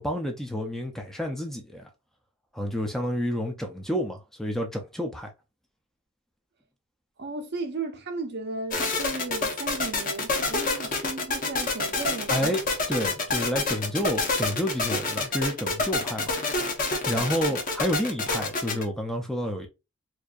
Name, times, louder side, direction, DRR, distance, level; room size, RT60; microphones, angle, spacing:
voice 1, 0.0-1.9 2.5-5.3 12.3-12.6 12.9-19.7, equal, ahead, 0.5 m, -30 dB
voice 2, 7.2-12.5 17.1-17.6, right 3 dB, 50° right, 0.7 m, -35 dB
sound 1, 8.7-18.8, left 3 dB, 40° left, 1.0 m, -27 dB
4.6 x 2.6 x 2.4 m
head